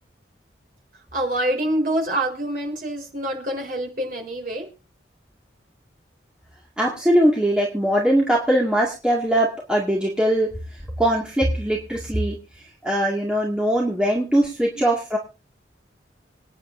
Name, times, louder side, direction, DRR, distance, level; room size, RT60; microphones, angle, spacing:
voice 1, 1.1-4.7, right 1 dB, 50° right, 2 dB, 4.3 m, -26 dB
voice 2, 6.8-15.2, right 1 dB, 5° right, -4 dB, 2.2 m, -21 dB
26.0 x 9.8 x 2.7 m, 0.32 s
head